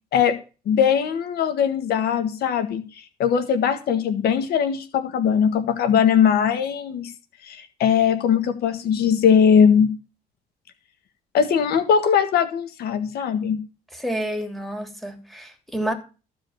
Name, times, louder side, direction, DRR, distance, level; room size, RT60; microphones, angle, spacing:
voice 1, 0.6-7.1 7.4-9.9 11.3-13.6, left 7 dB, 70° left, 1.6 m, -20 dB
voice 2, 13.9-15.9, right 1 dB, ahead, 3.0 m, -29 dB
14.5 x 5.0 x 8.0 m
cardioid pair, 110°, 17 cm